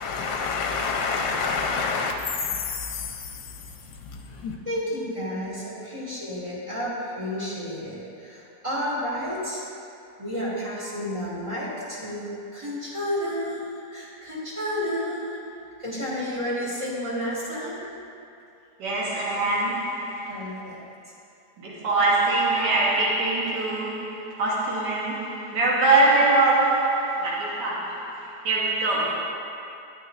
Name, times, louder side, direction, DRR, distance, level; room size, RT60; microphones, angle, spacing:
voice 1, 0.0-4.6, left 5 dB, 75° left, 1.2 m, -29 dB
voice 2, 4.7-9.6 10.2-15.4 15.8-17.8 20.3-20.8, equal, 20° right, 2.0 m, -31 dB
voice 3, 18.8-20.6 21.6-29.2, right 2 dB, 85° right, 1.7 m, -23 dB
10.5 x 9.0 x 2.5 m
omnidirectional pair, 1.8 m